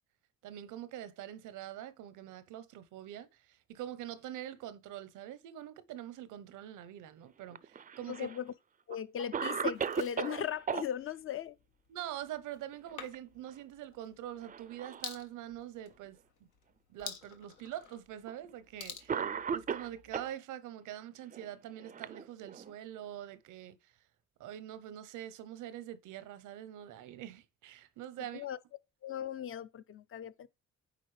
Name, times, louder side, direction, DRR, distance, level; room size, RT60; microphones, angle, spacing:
voice 1, 0.4-8.3 9.2-9.3 11.9-16.2 16.9-19.3 19.5-23.9 24.4-28.4, right 12 dB, 85° right, 0.7 m, -44 dB
Cough, 7.5-8.4 8.9-9.0 9.3-10.9 12.7-13.2 13.5-13.6 14.4-15.1 15.9-16.0 17.0-17.1 18.3-18.5 19.1-20.3 21.3-22.7, right 7 dB, 30° right, 0.4 m, -37 dB
voice 2, 8.1-8.5 8.9-11.6 28.2-28.6 29.0-30.5, left 9 dB, 45° left, 0.5 m, -38 dB
sound 1, 9.7-20.3, left 8 dB, 90° left, 1.0 m, -52 dB
8.9 x 3.9 x 3.2 m
cardioid pair, 90°, 30 cm